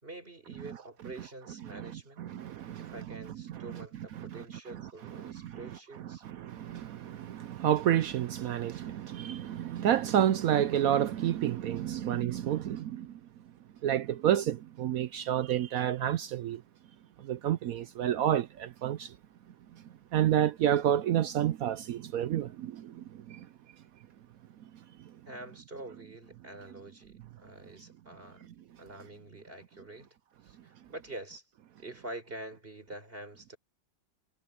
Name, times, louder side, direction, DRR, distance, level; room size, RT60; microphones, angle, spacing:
voice 1, 0.0-2.3 2.8-6.2 25.3-28.5 28.8-30.1 30.4-31.4 31.8-33.6, right 2 dB, 25° right, 5.6 m, -46 dB
voice 2, 1.7-2.9 3.5-3.8 4.2-4.3 5.2-5.6 6.2-13.1 13.8-16.6 17.2-19.1 20.1-23.5, right 11 dB, 75° right, 0.8 m, -30 dB
omnidirectional pair, 2.1 m